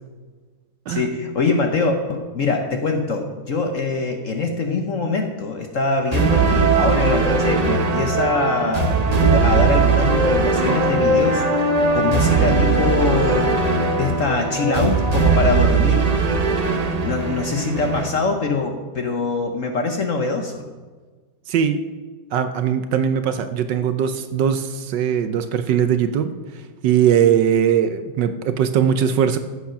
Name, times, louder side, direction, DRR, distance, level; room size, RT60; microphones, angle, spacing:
voice 1, 0.9-11.4 11.9-13.6 14.0-16.1 17.0-20.7, left 4 dB, 50° left, 5 dB, 1.0 m, -23 dB
sound 1, 6.1-18.1, right 4 dB, 40° right, 0.6 m, -19 dB
voice 2, 21.5-21.8 22.3-26.3 26.8-29.4, right 8 dB, 70° right, 10 dB, 1.2 m, -20 dB
14.0 x 8.2 x 5.8 m, 1.4 s
omnidirectional pair, 2.2 m